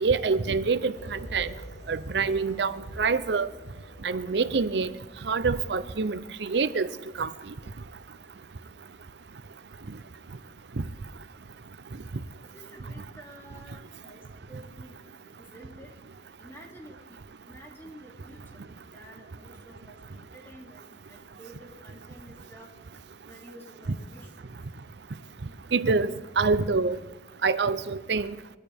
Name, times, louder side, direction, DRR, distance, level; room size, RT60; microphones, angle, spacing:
voice 1, 0.0-1.5 1.9-3.5 4.0-4.9 5.2-6.9 7.2-7.3 25.7-27.0 27.4-28.3, right 4 dB, 70° right, 14 dB, 0.6 m, -26 dB
sound 1, 0.9-8.8 9.2-9.4, equal, 45° left, 5.7 m, -47 dB
voice 2, 12.5-14.2 14.5-15.1 15.4-15.9 16.4-17.2 17.5-22.7 23.2-24.5, right 1 dB, 15° left, -1 dB, 2.7 m, -50 dB
22.5 x 13.0 x 3.5 m, 1.1 s
head